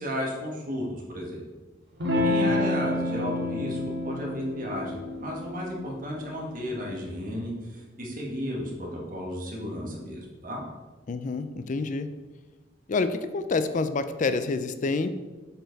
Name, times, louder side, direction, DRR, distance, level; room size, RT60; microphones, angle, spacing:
voice 1, 0.0-1.4 2.2-10.6, equal, 50° right, -2 dB, 1.6 m, -34 dB
Electric guitar / Strum, 2.0-7.1, left 2 dB, 65° right, 1.6 m, -29 dB
voice 2, 2.1-2.6 11.1-12.1 12.9-15.1, left 3 dB, 45° left, 11 dB, 0.4 m, -28 dB
7.8 x 4.4 x 4.0 m, 1.2 s
head